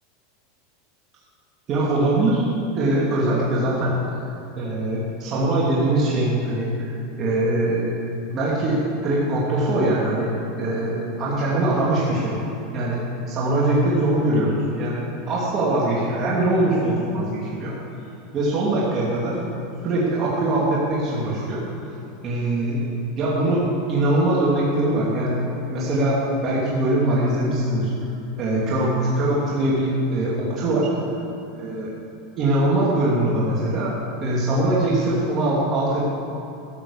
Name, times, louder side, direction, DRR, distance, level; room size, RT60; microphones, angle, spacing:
voice 1, 1.7-2.5 2.7-4.3 4.6-7.9 8.3-12.4 12.7-17.7 18.3-19.4 19.8-21.9 22.2-22.9 23.2-23.6 23.9-27.9 28.4-30.9 31.6-31.9 32.4-34.0 34.2-36.0, right 1 dB, 40° right, -6 dB, 2.6 m, -22 dB
13.5 x 7.3 x 7.2 m, 2.8 s
supercardioid pair, 125°, 0 cm